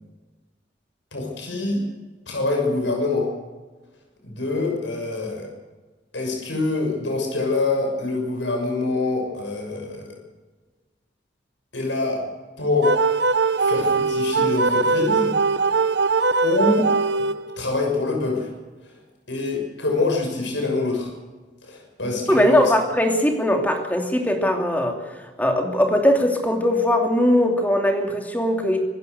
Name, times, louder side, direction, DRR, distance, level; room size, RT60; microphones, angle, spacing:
voice 1, 1.1-1.8 2.3-3.3 4.2-5.5 6.1-10.1 11.7-12.2 12.6-12.9 13.6-15.3 16.4-16.9 17.6-18.5 19.3-21.1 21.7-22.7, left 3 dB, 80° left, 1 dB, 6.8 m, -25 dB
sound 1, 12.8-17.7, right 4 dB, 65° right, 0.9 m, -21 dB
voice 2, 22.3-25.0 25.4-28.8, left 1 dB, 10° left, 3 dB, 2.7 m, -20 dB
25.5 x 16.0 x 6.8 m, 1.3 s
head